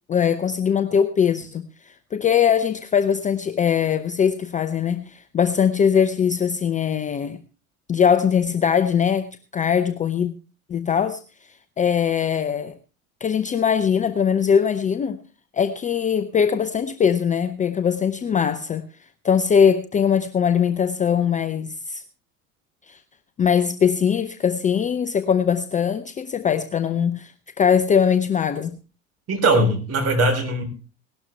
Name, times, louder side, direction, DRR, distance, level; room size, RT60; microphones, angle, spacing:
voice 1, 0.1-7.4 7.9-10.3 10.7-11.2 11.8-12.8 13.2-15.2 15.5-18.9 19.2-22.0 22.9-23.0 23.4-27.3 27.6-28.8, left 7 dB, 20° left, 0.7 m, -21 dB
voice 2, 29.3-30.6, right 2 dB, 35° right, 3.9 m, -20 dB
18.0 x 12.5 x 3.4 m
figure-of-eight pair, 75°, 41 cm